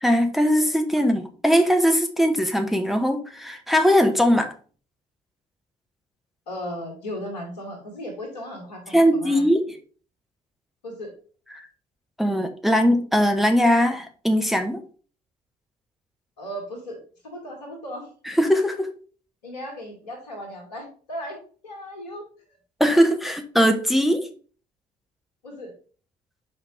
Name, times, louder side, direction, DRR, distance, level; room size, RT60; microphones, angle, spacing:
voice 1, 0.0-4.5 8.9-9.7 11.5-11.7 12.2-14.8 18.2-18.9 22.8-24.3, equal, ahead, 6 dB, 1.0 m, -20 dB
voice 2, 6.5-9.5 10.8-11.1 16.4-18.1 19.4-21.4 21.6-22.3 25.4-25.7, equal, 75° left, 3 dB, 2.4 m, -36 dB
5.8 x 5.1 x 5.1 m, 0.40 s
figure-of-eight pair, 50°, 21 cm